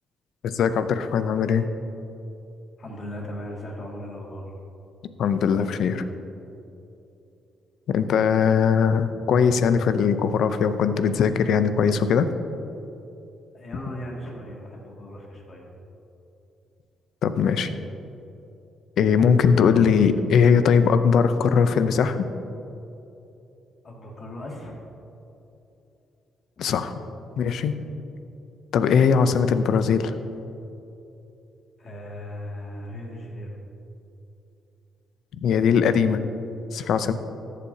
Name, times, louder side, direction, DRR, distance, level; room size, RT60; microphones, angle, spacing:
voice 1, 0.4-1.7 5.2-6.0 7.9-12.3 17.2-17.7 19.0-22.2 26.6-26.9 27.4-27.7 28.7-30.1 35.4-36.2 36.7-37.1, left 6 dB, 70° left, 11 dB, 0.5 m, -20 dB
voice 2, 2.8-4.5 13.5-15.7 23.8-24.8 26.6-26.8 31.8-33.6 37.1-37.2, equal, 45° left, -1 dB, 2.2 m, -37 dB
14.0 x 8.3 x 2.8 m, 2.9 s
cardioid pair, 90°, 0 cm